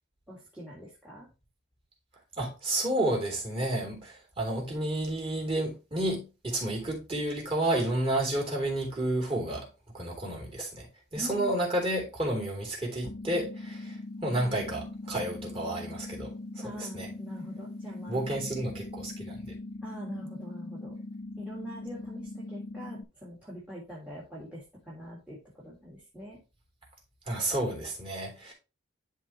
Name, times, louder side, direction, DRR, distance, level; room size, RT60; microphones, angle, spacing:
voice 1, 0.3-1.3 11.2-11.6 16.6-18.2 19.8-21.0 21.4-26.4, equal, 5° right, 1.6 m, -43 dB
voice 2, 2.4-9.7 9.9-10.9 11.1-17.1 18.1-19.5 27.2-28.5, right 1 dB, 25° right, 2.9 m, -31 dB
sound 1, 13.0-23.0, left 2 dB, 70° left, 0.7 m, -41 dB
11.0 x 3.8 x 3.0 m
head